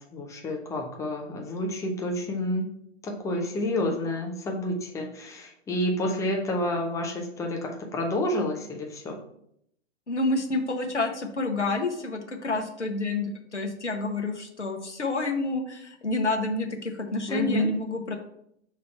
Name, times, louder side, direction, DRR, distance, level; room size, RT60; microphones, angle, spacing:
voice 1, 0.0-2.7 3.0-9.2 17.3-17.8, left 1 dB, 10° left, 1 dB, 0.6 m, -29 dB
voice 2, 10.1-18.2, left 2 dB, 85° left, 3 dB, 1.0 m, -29 dB
5.8 x 3.1 x 5.5 m, 0.72 s
figure-of-eight pair, 110°, 35 cm